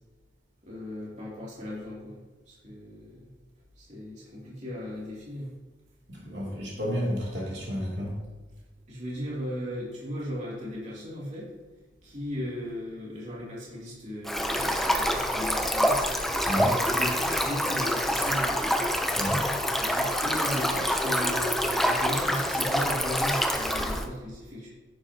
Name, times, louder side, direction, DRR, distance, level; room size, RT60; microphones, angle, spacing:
voice 1, 0.6-2.2 2.5-3.4 3.8-5.5 8.9-11.5 12.0-16.1 16.8-18.8 19.8-24.7, equal, 35° right, -7 dB, 2.9 m, -36 dB
voice 2, 6.1-8.1 16.4-16.7 19.2-19.4, equal, 65° right, -4 dB, 2.8 m, -31 dB
Stream, 14.2-24.0, equal, ahead, 0.6 m, -26 dB
10.5 x 9.5 x 2.9 m, 1.3 s
head